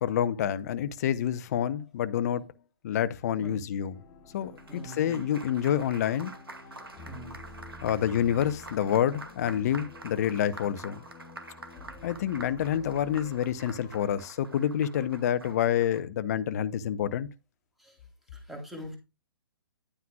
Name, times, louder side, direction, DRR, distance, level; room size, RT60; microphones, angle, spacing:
voice 1, 0.0-2.4 2.8-3.9 4.3-6.3 7.8-11.0 12.0-17.3, left 10 dB, 45° left, 0.9 m, -28 dB
sound 1, 3.9-14.2, left 3 dB, 20° left, 2.0 m, -50 dB
Applause, 4.3-16.0, right 2 dB, 85° right, 2.2 m, -47 dB
voice 2, 4.7-5.2 7.0-7.5 17.8-18.0 18.3-19.0, equal, ahead, 3.5 m, -43 dB
11.0 x 9.3 x 2.4 m
figure-of-eight pair, 125°, 12 cm